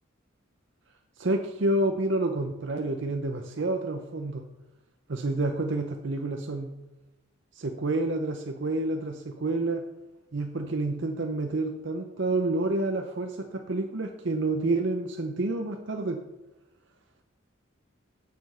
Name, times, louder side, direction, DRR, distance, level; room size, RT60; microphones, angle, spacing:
voice 1, 1.2-4.4 5.1-6.7 7.5-9.8 10.3-16.2, right 2 dB, 60° right, 4 dB, 0.7 m, -29 dB
9.3 x 7.0 x 5.5 m, 1.0 s
head